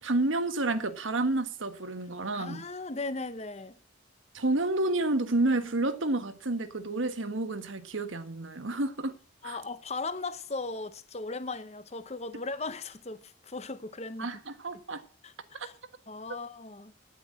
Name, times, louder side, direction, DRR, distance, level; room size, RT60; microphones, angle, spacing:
voice 1, 0.0-2.6 4.3-9.1 9.4-9.6 14.2-15.0 15.5-15.7, right 2 dB, 80° right, 1.4 m, -30 dB
voice 2, 2.3-3.8 9.4-14.3 15.2-15.3 15.6-15.7 16.1-16.9, left 3 dB, 35° left, 0.9 m, -37 dB
10.0 x 9.3 x 7.6 m
head